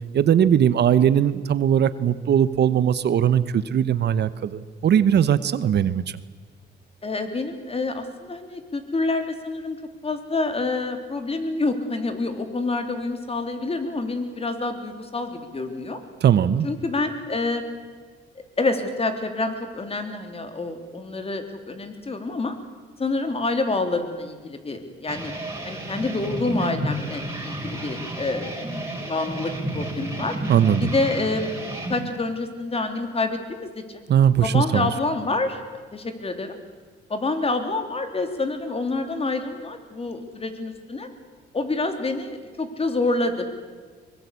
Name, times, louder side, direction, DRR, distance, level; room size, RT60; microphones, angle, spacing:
voice 1, 0.1-6.0 16.2-16.7 30.5-30.9 34.1-34.9, right 9 dB, 60° right, 15 dB, 0.9 m, -19 dB
voice 2, 7.0-9.8 10.0-16.0 16.6-17.6 18.6-22.5 23.0-25.3 25.6-28.6 29.0-30.3 30.8-34.0 34.4-35.6 35.9-36.6 37.1-41.1 41.5-43.4, left 3 dB, 30° left, 7 dB, 3.2 m, -27 dB
sound 1, 25.1-32.0, right 1 dB, 15° right, 5.6 m, -31 dB
23.0 x 20.5 x 8.3 m, 1.5 s
cardioid pair, 90°, 20 cm